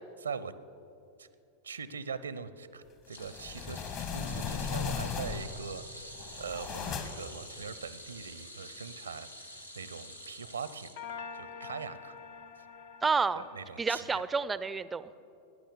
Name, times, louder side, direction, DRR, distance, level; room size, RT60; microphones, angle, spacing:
voice 1, 0.2-0.5 1.2-1.3 1.6-10.9 11.3-12.2 13.3-14.2, right 6 dB, 75° right, 15 dB, 0.7 m, -42 dB
sound 1, 3.1-11.5 11.9-12.1 13.3-13.4, equal, 85° left, 1.4 m, -48 dB
sound 2, 3.2-5.7 6.1-7.4, left 6 dB, 40° left, 1.5 m, -36 dB
sound 3, 4.1-7.7 11.0-13.8, left 6 dB, 55° left, 0.8 m, -48 dB
voice 2, 13.0-13.4 13.8-15.2, right 5 dB, 15° right, 16 dB, 0.5 m, -30 dB
18.0 x 10.5 x 7.0 m, 2.7 s
figure-of-eight pair, 90°, 0 cm